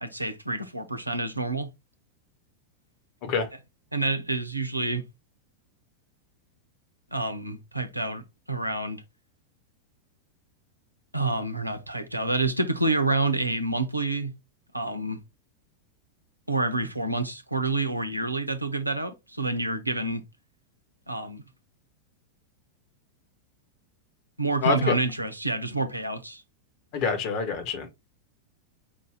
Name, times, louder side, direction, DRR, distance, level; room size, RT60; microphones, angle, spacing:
voice 1, 0.0-1.7 3.9-5.0 7.1-9.0 11.1-14.3 14.7-15.2 16.5-20.2 21.1-21.4 24.4-26.4, right 2 dB, 85° right, 0.7 m, -28 dB
voice 2, 24.6-24.9 26.9-27.9, left 5 dB, 45° left, 1.3 m, -26 dB
5.2 x 2.6 x 3.4 m
figure-of-eight pair, 90°, 0 cm